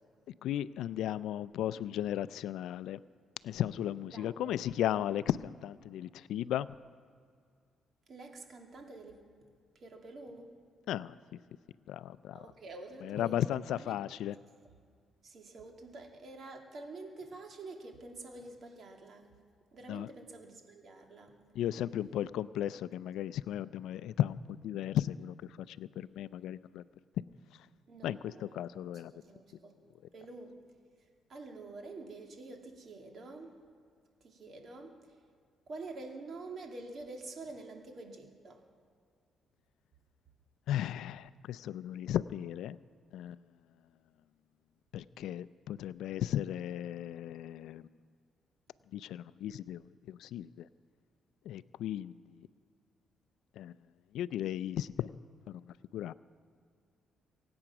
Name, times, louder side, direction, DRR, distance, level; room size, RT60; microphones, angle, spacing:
voice 1, 0.4-3.0 3.4-6.7 10.9-11.2 11.9-12.5 13.0-14.4 19.8-20.1 21.5-24.4 24.6-26.8 28.0-29.1 40.7-42.8 43.1-43.4 44.9-47.9 48.9-50.7 51.5-52.5 53.6-53.7 54.1-55.1 55.5-55.6 55.9-56.1, left 11 dB, 85° left, 17 dB, 0.4 m, -35 dB
voice 2, 4.0-4.5 8.1-9.2 9.7-10.5 12.3-14.2 15.2-19.3 19.7-21.4 27.9-29.7 30.1-30.6 31.3-33.6 34.2-35.2 35.7-38.7, right 2 dB, 55° right, 2 dB, 2.5 m, -48 dB
24.0 x 8.7 x 6.0 m, 2.1 s
cardioid pair, 90°, 0 cm